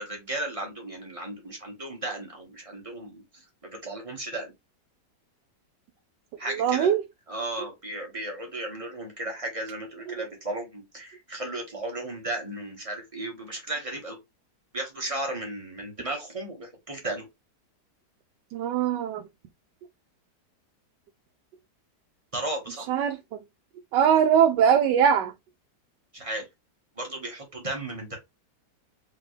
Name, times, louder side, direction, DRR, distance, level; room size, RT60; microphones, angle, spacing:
voice 1, 0.0-4.5 6.4-7.0 7.3-14.2 14.7-17.2 22.3-22.9 26.1-26.4 27.0-28.2, right 1 dB, 20° right, 1.4 m, -35 dB
voice 2, 6.6-7.0 18.5-19.2 22.9-23.2 23.9-25.3, right 8 dB, 80° right, 1.2 m, -21 dB
3.7 x 3.6 x 3.2 m
omnidirectional pair, 1.9 m